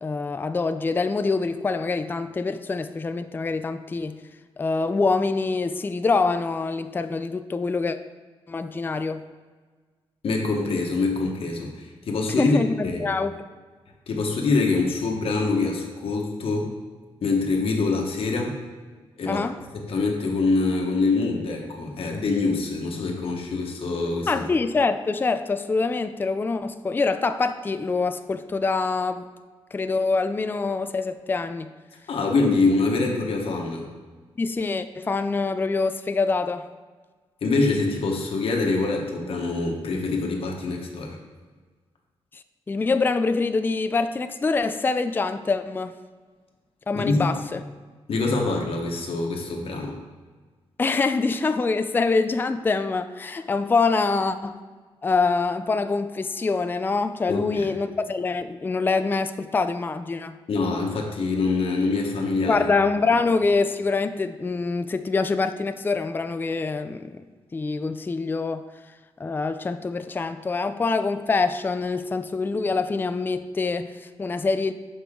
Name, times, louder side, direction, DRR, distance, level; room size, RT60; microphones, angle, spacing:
voice 1, 0.0-4.2 4.6-8.0 8.5-9.2 12.4-13.4 19.3-19.6 24.3-29.3 29.7-31.7 34.4-36.7 42.3-45.9 46.9-47.6 50.8-54.6 55.0-60.4 62.5-67.3 67.5-68.6 69.2-74.7, left 4 dB, 20° left, 10 dB, 0.3 m, -25 dB
voice 2, 10.2-12.6 12.8-13.0 14.1-16.7 17.2-18.5 19.2-19.4 19.7-24.5 32.1-33.9 37.4-41.2 46.9-47.3 48.1-50.0 57.3-57.7 60.5-62.7, left 3 dB, 70° left, 1 dB, 1.2 m, -25 dB
6.6 x 5.4 x 3.7 m, 1.4 s
cardioid pair, 95°, 10 cm